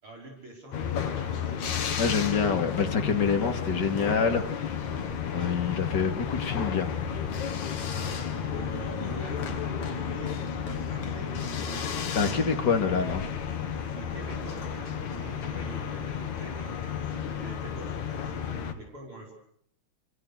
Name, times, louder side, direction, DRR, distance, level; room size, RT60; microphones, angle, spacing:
voice 1, 0.0-1.6 7.9-12.1 13.8-19.3, right 1 dB, 40° right, 6.1 m, -45 dB
sound 1, 0.7-18.7, left 7 dB, 65° left, 3.4 m, -32 dB
voice 2, 2.0-4.7 5.3-6.9 12.1-13.2, left 5 dB, 35° left, 2.8 m, -26 dB
28.5 x 25.5 x 6.7 m
omnidirectional pair, 3.7 m